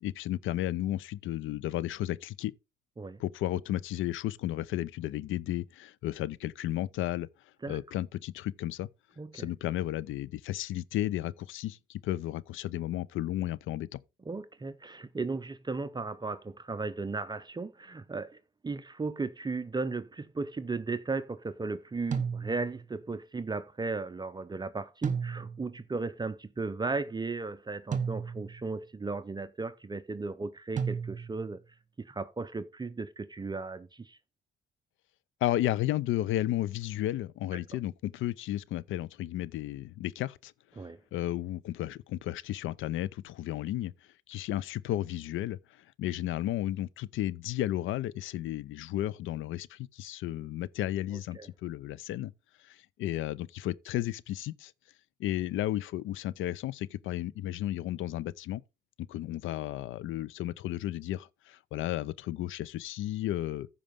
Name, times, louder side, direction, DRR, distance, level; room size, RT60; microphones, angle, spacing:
voice 1, 0.0-2.5 3.2-7.3 7.7-8.9 9.3-13.9 35.4-40.5 41.1-43.9 44.3-45.6 46.0-52.3 52.6-54.7 55.2-58.6 59.1-63.7, left 14 dB, 80° left, 0.5 m, -33 dB
voice 2, 9.2-9.5 14.3-18.4 18.6-31.6 32.0-34.2 40.8-41.0 51.3-51.5, right 3 dB, 20° right, 0.6 m, -36 dB
sound 1, 22.1-22.9 25.0-25.8 27.9-28.7 30.8-31.5, right 6 dB, 40° right, 1.2 m, -34 dB
14.5 x 4.9 x 3.6 m
cardioid pair, 90°, 20 cm